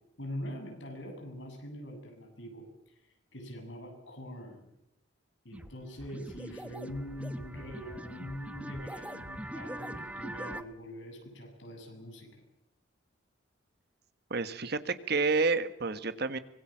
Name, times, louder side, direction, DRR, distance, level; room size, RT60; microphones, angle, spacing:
voice 1, 0.2-2.7 3.3-4.6 5.4-12.4, equal, 65° left, 4 dB, 7.7 m, -43 dB
sound 1, 5.5-5.7 6.0-10.6, right 1 dB, 5° right, 1.2 m, -42 dB
voice 2, 14.3-16.4, right 4 dB, 55° right, 11 dB, 1.6 m, -29 dB
25.0 x 21.0 x 7.5 m, 0.82 s
head